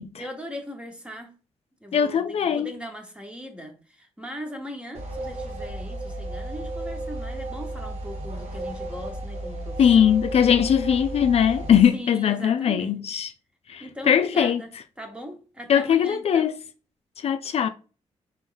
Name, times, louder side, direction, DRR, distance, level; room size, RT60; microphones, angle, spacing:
voice 1, 0.2-1.3 1.8-10.1 11.9-13.0 13.8-14.7 15.0-16.5, equal, 10° right, 1.1 m, -39 dB
voice 2, 1.9-2.7 9.8-13.3 13.7-14.6 15.7-16.5 17.2-17.7, left 8 dB, 60° left, 0.4 m, -20 dB
sound 1, 4.9-11.8, right 1 dB, 65° right, 1.4 m, -34 dB
4.4 x 3.1 x 3.9 m
wide cardioid pair, 120°, 12 cm